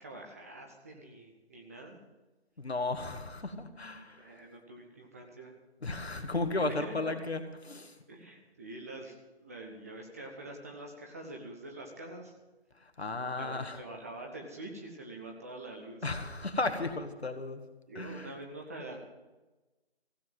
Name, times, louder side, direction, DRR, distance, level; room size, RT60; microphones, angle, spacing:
voice 1, 0.0-2.0 3.6-3.7 4.2-5.6 6.5-7.1 8.1-9.1 9.4-12.3 13.4-16.1 17.9-19.0, right 2 dB, 15° right, 1 dB, 0.9 m, -45 dB
voice 2, 2.6-4.4 5.8-8.0 12.8-13.8 16.0-17.6 18.0-18.3, left 2 dB, 70° left, 7 dB, 2.0 m, -35 dB
16.0 x 8.0 x 9.2 m, 1.1 s
figure-of-eight pair, 155°, 33 cm